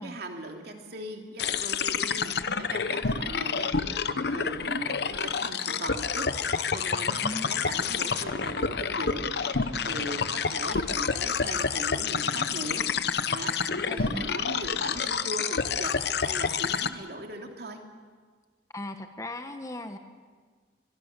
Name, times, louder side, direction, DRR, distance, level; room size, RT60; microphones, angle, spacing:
voice 1, 0.0-12.9 13.3-17.8, right 1 dB, 55° right, 3 dB, 2.8 m, -39 dB
sound 1, 1.4-16.9, left 5 dB, 60° left, 0.8 m, -29 dB
voice 2, 13.8-14.2 18.7-20.0, left 1 dB, 15° left, 7 dB, 1.1 m, -37 dB
23.5 x 22.5 x 6.7 m, 1.5 s
head